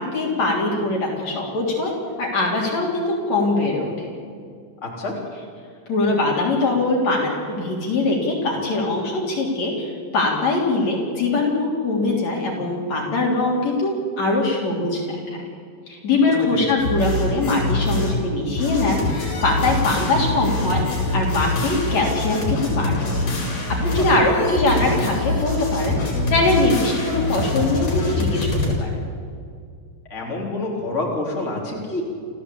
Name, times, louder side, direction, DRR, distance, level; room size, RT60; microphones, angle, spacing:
voice 1, 0.0-1.9 2.2-4.1 5.9-15.4 15.9-20.8 21.1-22.9 23.8-28.5 28.8-28.9, left 2 dB, 55° left, -1 dB, 4.6 m, -22 dB
voice 2, 4.8-5.1 16.2-16.6 30.1-32.0, left 2 dB, 20° left, -2 dB, 4.1 m, -27 dB
sound 1, 16.8-18.3 18.6-28.7, left 2 dB, 75° left, 6.6 m, -24 dB
29.5 x 14.0 x 8.5 m, 2.2 s
omnidirectional pair, 3.7 m